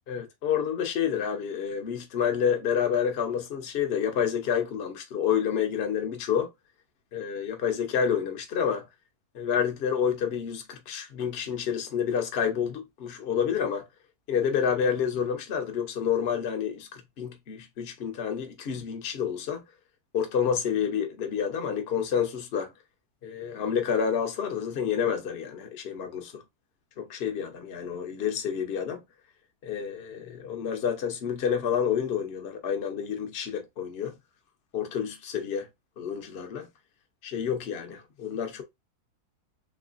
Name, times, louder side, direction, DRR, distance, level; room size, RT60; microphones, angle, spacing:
voice 1, 0.1-6.5 7.1-8.9 9.3-13.9 14.3-19.6 20.1-22.7 23.2-26.4 27.0-29.0 29.6-34.1 34.7-35.7 36.0-36.7 37.2-38.6, left 7 dB, 50° left, 0.9 m, -29 dB
3.5 x 3.1 x 2.4 m
omnidirectional pair, 1.7 m